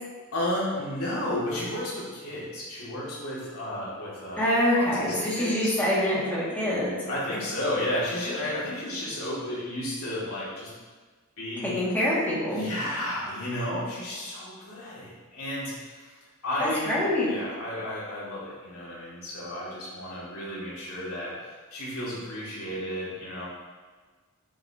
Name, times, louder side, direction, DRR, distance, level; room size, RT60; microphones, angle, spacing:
voice 1, 0.3-4.4 4.7-5.7 7.0-10.7 11.4-11.8 12.5-16.2 16.4-17.0 17.3-23.5, left 1 dB, 75° left, -7 dB, 2.6 m, -33 dB
voice 2, 4.4-6.9 11.6-12.6 16.6-17.3, left 1 dB, 10° left, -8 dB, 2.2 m, -25 dB
9.1 x 6.9 x 3.0 m, 1.4 s
head